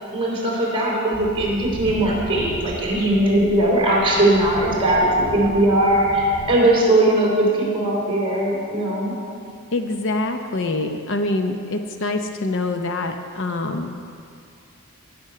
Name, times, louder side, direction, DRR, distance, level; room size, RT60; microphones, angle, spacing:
voice 1, 0.1-9.1, right 1 dB, 25° right, -4 dB, 3.4 m, -19 dB
sound 1, 1.1-6.6, right 1 dB, 5° left, 1.7 m, -36 dB
voice 2, 9.7-13.9, left 2 dB, 55° left, 6 dB, 0.7 m, -25 dB
18.0 x 6.1 x 6.7 m, 2.3 s
head